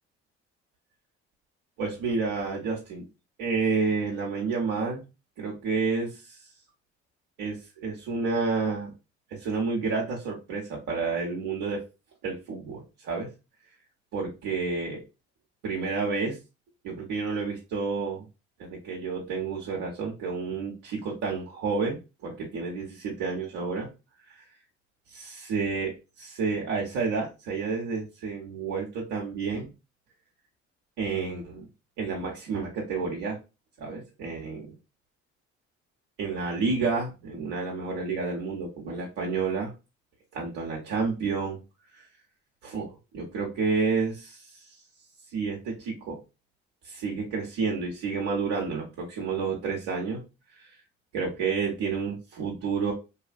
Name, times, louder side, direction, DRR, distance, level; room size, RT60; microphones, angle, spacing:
voice 1, 1.8-3.1 3.4-5.0 5.4-6.4 7.4-8.9 9.3-11.8 12.2-13.3 14.1-15.0 15.6-16.4 16.8-18.3 18.6-22.0 22.2-23.9 24.3-24.4 25.1-29.7 31.0-31.7 32.0-33.4 33.8-34.8 36.2-39.7 40.3-41.6 41.9-42.0 42.6-44.6 45.3-46.2 46.8-50.2 50.6-50.7 51.1-52.9, right 4 dB, 75° right, -3 dB, 0.7 m, -30 dB
2.7 x 2.4 x 2.3 m, 0.28 s
hypercardioid pair, 45°, 33 cm